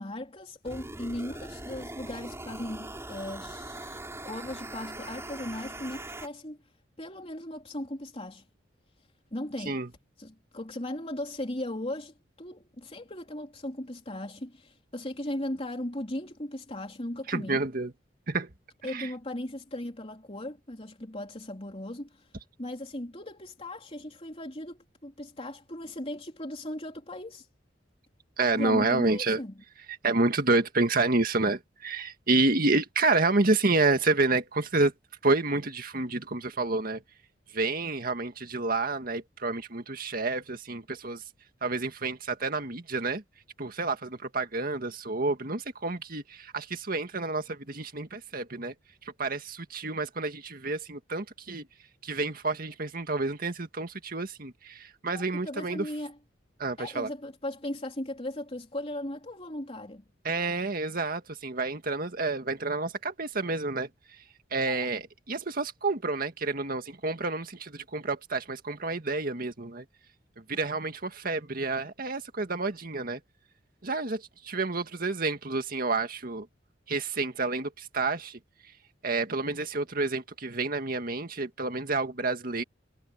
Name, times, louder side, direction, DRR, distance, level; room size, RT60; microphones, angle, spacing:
voice 1, 0.0-4.0 4.3-6.6 7.0-8.4 9.3-9.8 10.2-17.6 18.8-22.3 22.6-27.5 28.5-29.6 55.1-56.2 56.8-60.0 64.7-64.9, left 1 dB, 30° left, 3.6 m, -37 dB
sound 1, 0.6-6.3, right 1 dB, 15° right, 7.3 m, -41 dB
voice 2, 17.3-17.9 18.3-18.5 18.9-19.1 28.4-29.4 30.0-34.9 35.2-37.0 37.5-41.2 41.6-43.2 43.6-48.7 49.2-51.6 52.0-55.9 56.6-57.1 60.2-63.9 64.5-69.8 70.5-73.2 73.8-76.5 76.9-78.4 79.0-82.6, right 3 dB, 50° right, 2.0 m, -29 dB
head